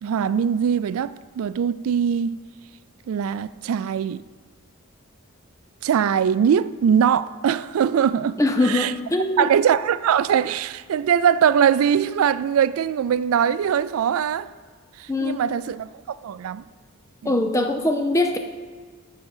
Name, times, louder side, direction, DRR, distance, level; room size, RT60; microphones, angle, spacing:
voice 1, 0.0-2.4 3.1-4.2 5.8-8.9 9.4-14.5 15.0-16.6 17.2-17.3, right 8 dB, 80° right, 0.3 m, -21 dB
voice 2, 8.4-9.5 15.1-15.4 17.2-18.4, left 2 dB, 15° left, 0.6 m, -22 dB
10.5 x 3.8 x 7.2 m
head